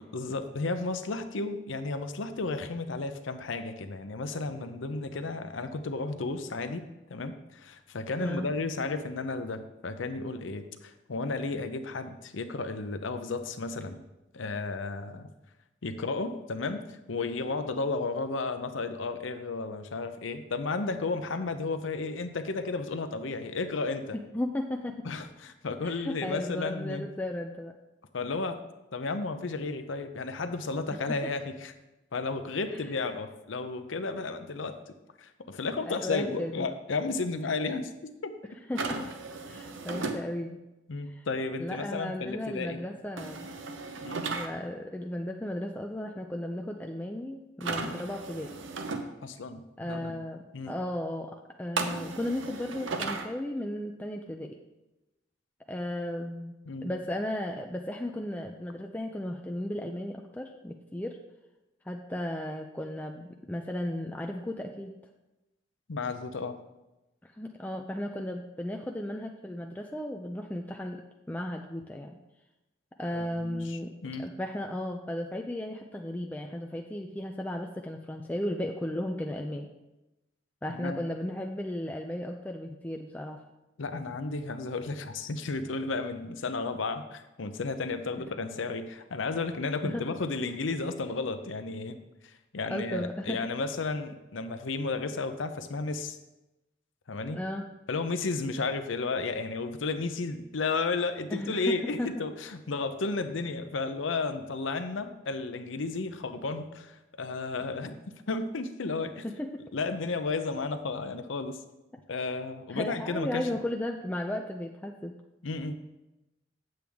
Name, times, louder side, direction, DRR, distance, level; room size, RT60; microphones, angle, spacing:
voice 1, 0.0-6.8 7.1-14.0 14.3-15.3 15.8-24.2 25.0-27.0 28.1-28.6 28.9-31.7 32.1-34.8 35.2-38.3 40.9-42.8 44.0-44.3 49.2-50.2 50.5-50.7 56.7-56.9 65.9-66.6 73.1-74.3 80.7-81.0 83.8-92.0 92.2-96.2 97.1-97.4 97.9-109.2 109.7-111.6 112.1-113.5 115.4-115.8, left 3 dB, 80° left, 9 dB, 0.7 m, -33 dB
voice 2, 8.2-8.5 24.3-25.0 25.8-27.7 32.7-32.8 35.9-36.7 38.7-39.1 39.5-40.6 41.1-41.3 41.6-43.5 44.3-48.6 49.8-54.6 55.7-56.5 56.8-61.2 61.9-64.9 67.2-72.2 73.0-73.9 74.2-79.7 80.6-83.4 89.8-90.0 92.7-93.4 97.3-97.7 101.3-102.1 109.2-109.6 112.7-115.1, left 1 dB, 10° left, 2 dB, 0.4 m, -35 dB
sound 1, 38.7-40.2 43.2-44.5 47.6-49.0 51.8-53.3, right 4 dB, 80° right, 0.8 m, -35 dB
8.6 x 7.7 x 3.5 m, 0.99 s
head